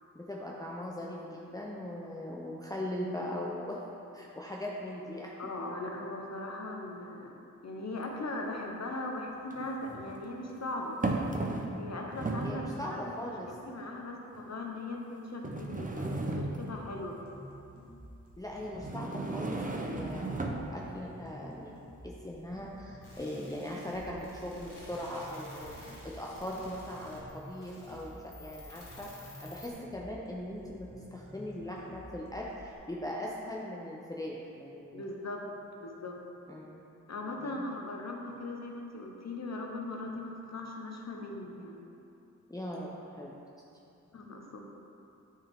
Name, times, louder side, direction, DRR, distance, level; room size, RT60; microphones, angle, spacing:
voice 1, 0.1-3.8 4.1-5.3 12.4-13.6 18.4-35.1 36.5-36.8 37.4-37.7 42.5-42.9 43.2-43.4, left 1 dB, 10° left, -4 dB, 0.7 m, -40 dB
voice 2, 1.9-2.4 5.4-7.3 7.6-11.0 11.7-13.0 13.7-17.2 34.9-35.4 35.8-36.2 37.1-41.8 44.1-44.6, left 2 dB, 55° left, 1 dB, 1.0 m, -39 dB
sound 1, 8.0-8.1 9.5-10.2 11.0-11.9 12.1-12.7 13.5-13.6 14.4-14.5 15.4-16.9 18.8-20.7, right 2 dB, 25° right, 0.8 m, -34 dB
sound 2, 16.8-32.8, right 1 dB, 45° right, 1.6 m, -52 dB
sound 3, 23.0-29.7, left 2 dB, 85° left, 1.6 m, -52 dB
8.8 x 4.8 x 3.5 m, 2.8 s
cardioid pair, 50°, 31 cm